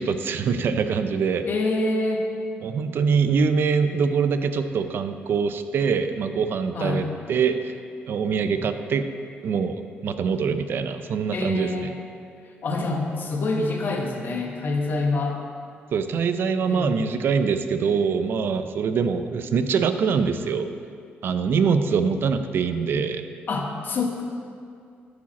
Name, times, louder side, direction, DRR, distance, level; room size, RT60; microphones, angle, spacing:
voice 1, 0.0-1.5 2.6-7.7 8.1-9.1 9.4-11.9 15.9-20.7 21.2-23.2, right 5 dB, 60° right, 9 dB, 0.5 m, -24 dB
voice 2, 1.4-2.3 6.7-7.0 11.3-12.0 12.6-15.4 16.7-16.9 23.5-24.2, left 2 dB, 50° left, 1 dB, 1.1 m, -26 dB
11.5 x 4.8 x 4.2 m, 2.3 s
cardioid pair, 105°, 4 cm